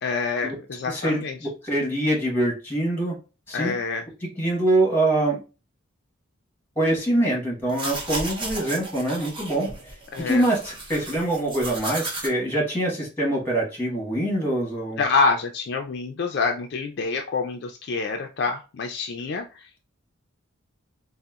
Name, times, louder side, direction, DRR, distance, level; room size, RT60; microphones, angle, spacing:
voice 1, 0.0-1.4 3.5-4.0 10.1-10.5 15.0-19.4, left 4 dB, 55° left, 3 dB, 0.3 m, -26 dB
voice 2, 0.9-3.1 3.5-3.7 4.4-5.4 6.8-9.7 10.3-15.0, right 1 dB, 10° left, -2 dB, 1.1 m, -24 dB
sound 1, 7.6-12.3, right 2 dB, 25° right, 0.7 m, -34 dB
3.8 x 2.0 x 2.3 m, 0.31 s
head